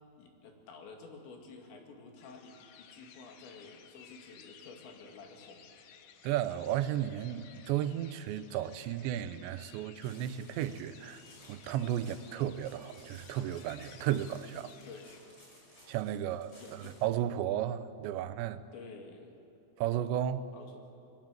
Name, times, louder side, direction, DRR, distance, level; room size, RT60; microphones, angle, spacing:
voice 1, 0.2-5.7 11.9-12.1 14.9-15.1 16.2-17.0 18.7-19.3 20.5-20.8, left 4 dB, 90° left, 3 dB, 4.7 m, -51 dB
sound 1, 2.2-15.2, left 8 dB, 75° left, 3.3 m, -57 dB
voice 2, 6.2-11.2 11.5-14.7 15.9-18.6 19.8-20.4, right 11 dB, 85° right, 13 dB, 3.1 m, -34 dB
sound 2, 10.0-17.2, equal, 20° left, 6.1 m, -58 dB
27.0 x 21.0 x 7.6 m, 2.8 s
omnidirectional pair, 5.0 m